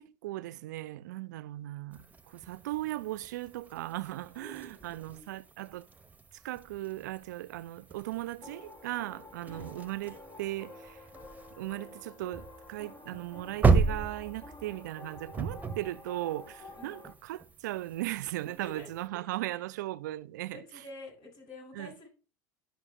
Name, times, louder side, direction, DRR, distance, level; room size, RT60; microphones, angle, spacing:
voice 1, 0.0-5.8 6.4-11.1 11.6-20.6 21.8-21.9, right 16 dB, 75° right, 0.5 m, -37 dB
sound 1, 1.9-19.1, right 4 dB, 15° right, 1.1 m, -35 dB
voice 2, 4.3-5.3 9.5-9.7 16.8-17.0 18.6-18.9 19.2-19.7 20.5-22.1, left 1 dB, 50° left, 6.3 m, -49 dB
sound 2, 8.4-17.1, left 3 dB, 35° left, 1.7 m, -50 dB
11.0 x 5.9 x 4.8 m
hypercardioid pair, 85°, 10 cm